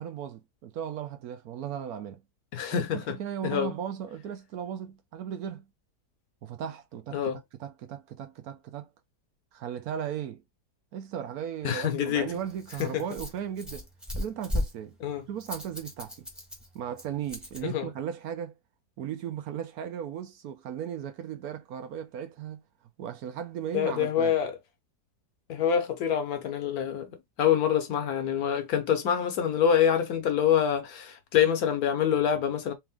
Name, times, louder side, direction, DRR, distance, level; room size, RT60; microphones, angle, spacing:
voice 1, 0.0-2.2 2.7-5.6 6.4-7.2 7.6-8.9 9.5-10.4 10.9-13.9 14.1-15.0 15.3-16.3 16.7-18.5 19.0-22.6 23.0-24.3, right 9 dB, 70° right, 1.1 m, -36 dB
voice 2, 2.5-3.2 3.4-3.7 7.1-7.4 11.6-12.3 12.8-13.0 15.0-15.2 17.6-17.9 23.7-24.5 25.5-32.7, left 9 dB, 65° left, 1.2 m, -26 dB
Rattle, 11.6-17.6, left 1 dB, ahead, 0.9 m, -37 dB
3.5 x 3.1 x 3.5 m
omnidirectional pair, 1.8 m